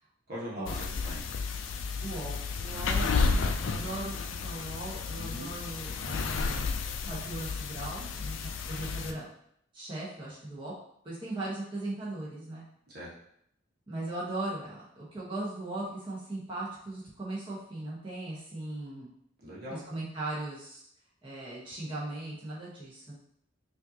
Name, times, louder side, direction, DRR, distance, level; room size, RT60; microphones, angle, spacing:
voice 1, 0.3-1.2 5.2-5.5 8.7-9.1 12.9-13.1 19.4-19.8, equal, 55° right, -6 dB, 1.3 m, -42 dB
sound 1, 0.7-9.1, left 4 dB, 75° left, 0.4 m, -32 dB
voice 2, 2.0-6.8 7.1-9.3 9.7-10.7 11.0-12.6 13.9-19.1 19.7-20.8 21.2-23.1, right 2 dB, 25° right, -8 dB, 1.2 m, -38 dB
5.2 x 2.7 x 2.8 m, 0.71 s
head